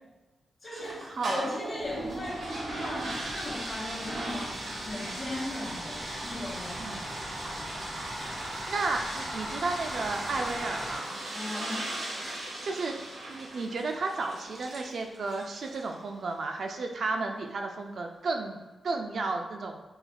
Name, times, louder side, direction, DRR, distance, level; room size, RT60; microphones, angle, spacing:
voice 1, 0.6-7.1 7.4-7.6 11.3-11.9, left 1 dB, 30° left, -5 dB, 1.1 m, -38 dB
sound 1, 0.7-16.0, right 1 dB, 75° right, 0.9 m, -38 dB
voice 2, 1.2-1.5 6.8-7.1 8.3-11.2 12.6-12.9 13.3-19.8, right 3 dB, 55° right, 3 dB, 0.3 m, -33 dB
sound 2, 1.8-11.0, equal, 20° right, 0.7 m, -41 dB
4.9 x 2.3 x 2.2 m, 1.1 s
wide cardioid pair, 140°, 0 cm